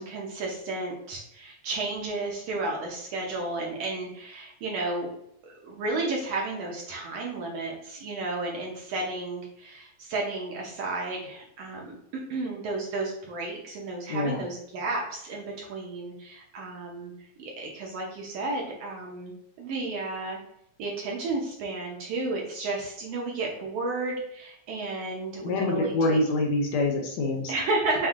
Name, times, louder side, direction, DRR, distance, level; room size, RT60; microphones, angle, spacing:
voice 1, 0.0-5.1 5.4-11.9 12.3-20.4 20.8-26.2 27.2-28.1, right 2 dB, 70° right, -1 dB, 1.7 m, -32 dB
voice 2, 25.4-27.5, left 2 dB, 75° left, 1 dB, 1.7 m, -25 dB
7.0 x 2.6 x 2.4 m, 0.75 s
omnidirectional pair, 3.4 m